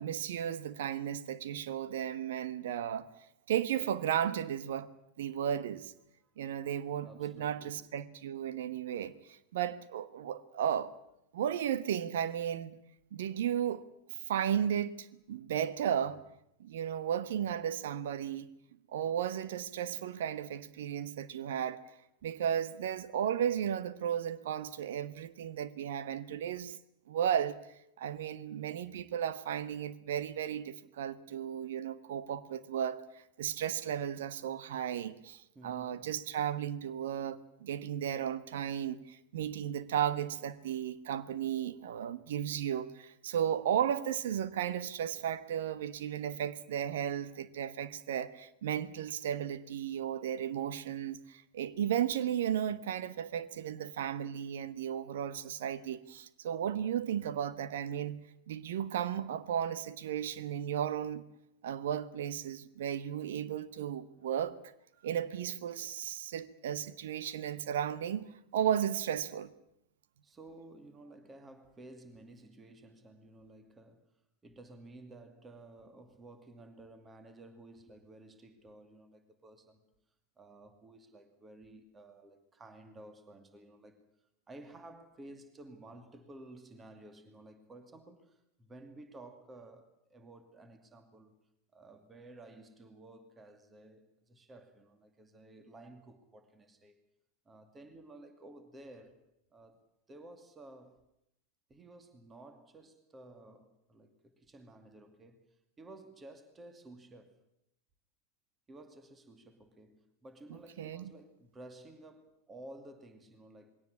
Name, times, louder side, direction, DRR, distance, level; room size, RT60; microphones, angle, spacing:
voice 1, 0.0-3.1 3.5-4.9 5.2-5.9 6.4-10.9 11.3-12.8 13.1-13.8 14.3-16.2 16.6-18.5 18.9-21.8 22.2-26.8 27.1-27.5 28.0-58.2 58.5-61.2 61.6-64.5 65.0-69.5 110.8-111.0, right 9 dB, 60° right, 1.2 m, -34 dB
voice 2, 7.0-7.9 35.5-36.1 40.3-40.5 70.2-79.9 80.4-91.4 91.7-97.0 97.4-99.2 99.5-99.8 100.1-101.0 101.7-107.4 108.7-113.7, right 2 dB, 15° right, 2.4 m, -54 dB
21.5 x 17.5 x 9.7 m
figure-of-eight pair, 90°, 0 cm